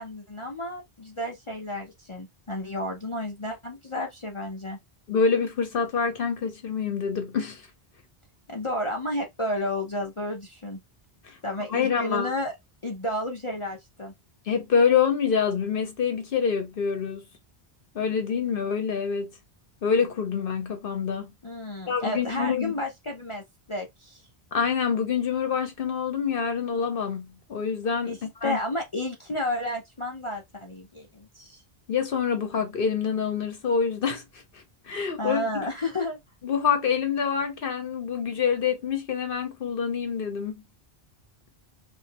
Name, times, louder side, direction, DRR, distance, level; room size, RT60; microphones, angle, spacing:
voice 1, 0.0-4.8 8.5-10.8 11.4-12.5 12.8-14.1 21.4-23.4 23.7-24.2 28.0-28.2 28.4-31.6 35.2-36.2, left 1 dB, 35° left, 0.7 m, -31 dB
voice 2, 5.1-7.7 11.2-11.4 11.7-12.3 14.5-17.3 17.9-19.4 19.8-21.3 21.9-22.8 24.5-28.6 31.9-35.7 36.4-40.6, left 6 dB, 65° left, 0.9 m, -26 dB
3.1 x 2.5 x 2.8 m
omnidirectional pair, 1.0 m